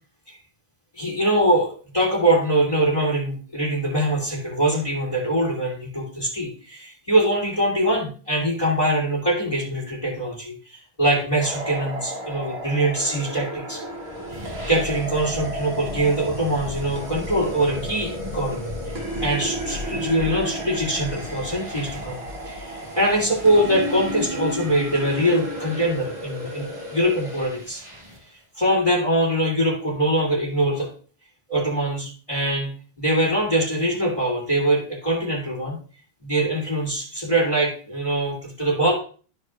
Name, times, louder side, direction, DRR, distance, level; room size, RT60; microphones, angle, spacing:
voice 1, 1.0-13.8 14.3-14.4 14.7-22.2 22.5-26.6 26.9-27.8 28.6-30.9 31.5-32.7 33.0-35.8 36.2-38.9, right 1 dB, 35° left, -2 dB, 2.5 m, -23 dB
sound 1, 11.4-27.4, right 1 dB, 85° right, 1.5 m, -33 dB
sound 2, 13.7-28.3, left 2 dB, 40° right, 2.4 m, -38 dB
12.5 x 4.7 x 2.4 m, 0.40 s
omnidirectional pair, 1.0 m